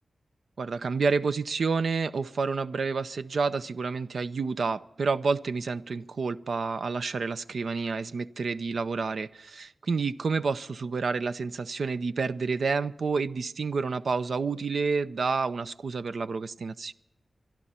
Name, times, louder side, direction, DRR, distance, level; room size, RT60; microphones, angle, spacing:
voice 1, 0.6-16.9, right 4 dB, 75° right, 12 dB, 0.6 m, -29 dB
25.0 x 11.5 x 4.3 m, 0.92 s
cardioid pair, 65°, 0 cm